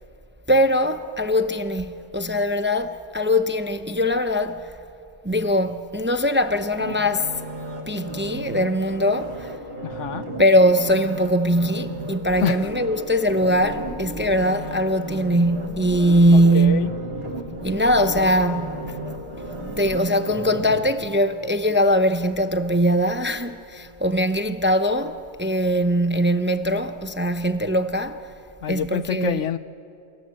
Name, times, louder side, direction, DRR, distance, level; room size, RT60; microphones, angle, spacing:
voice 1, 0.5-4.7 5.2-7.4 7.9-9.5 10.4-16.9 17.6-19.0 19.8-28.3 28.7-29.4, equal, 10° right, 0.6 m, -21 dB
sound 1, 6.8-21.8 22.2-22.4, right 1 dB, 55° right, 2.7 m, -35 dB
voice 2, 9.8-10.3 12.4-12.6 16.3-16.9 28.6-29.6, left 8 dB, 75° left, 1.1 m, -26 dB
sound 2, 12.3-20.0, right 1 dB, 35° right, 4.0 m, -39 dB
28.5 x 24.5 x 7.7 m
omnidirectional pair, 1.3 m